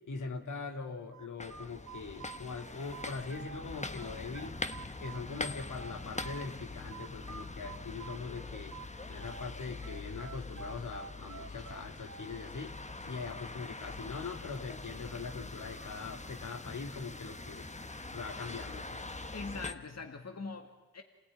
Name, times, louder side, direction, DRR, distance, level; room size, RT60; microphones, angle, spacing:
voice 1, 0.1-4.6 5.0-8.8 9.1-17.7 18.1-19.0, left 4 dB, 75° left, 5 dB, 2.3 m, -42 dB
sound 1, 1.1-3.7 4.0-6.5 6.9-9.5 9.8-12.5, right 6 dB, 65° right, 1.9 m, -48 dB
sound 2, 1.4-19.7, left 3 dB, 20° left, 1.4 m, -43 dB
voice 2, 19.3-21.0, left 4 dB, 55° left, 5 dB, 1.9 m, -42 dB
27.0 x 16.0 x 9.9 m, 1.3 s
cardioid pair, 45°, 31 cm